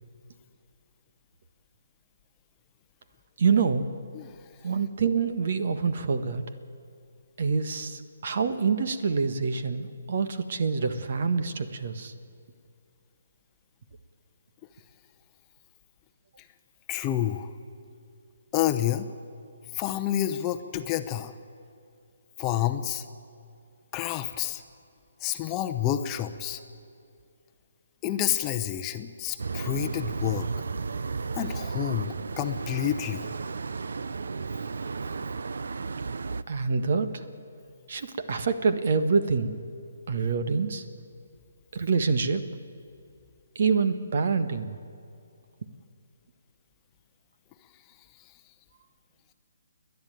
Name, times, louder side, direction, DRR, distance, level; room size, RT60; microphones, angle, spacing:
voice 1, 3.4-3.8 4.6-6.4 7.4-12.1 36.5-37.2 37.9-39.6 40.1-40.8 41.7-42.4 43.5-44.8, right 5 dB, 55° right, 10 dB, 1.5 m, -26 dB
voice 2, 16.9-17.5 18.5-19.1 19.7-21.3 22.4-23.0 23.9-24.6 25.2-26.6 28.0-30.5 31.4-33.3, left 12 dB, 20° left, 8 dB, 0.8 m, -29 dB
sound 1, 29.4-36.4, right 4 dB, 75° right, 0.6 m, -33 dB
29.5 x 11.0 x 9.2 m, 2.4 s
hypercardioid pair, 155°, 0 cm